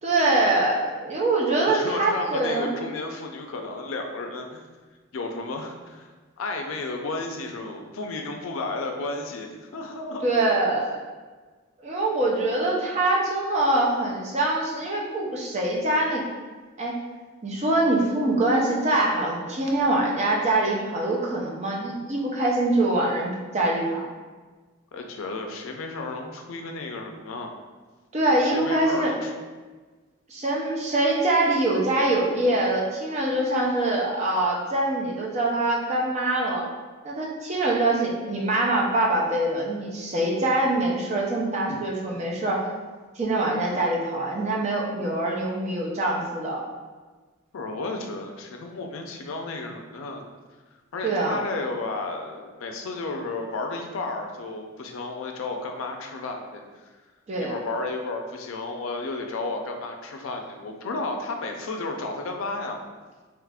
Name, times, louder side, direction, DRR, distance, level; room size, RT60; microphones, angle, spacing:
voice 1, 0.0-2.7 10.2-11.0 11.8-16.2 16.8-16.9 17.4-24.0 28.1-29.1 30.3-36.6 37.0-42.6 43.2-46.6 51.0-51.4 57.3-57.5, right 2 dB, 30° right, -3 dB, 0.5 m, -24 dB
voice 2, 1.7-4.6 5.1-6.1 6.4-10.3 24.9-27.5 28.4-29.3 41.7-41.8 47.5-50.2 50.9-56.6 57.4-62.8, left 3 dB, 70° left, 3 dB, 0.4 m, -33 dB
3.0 x 2.4 x 3.4 m, 1.4 s
head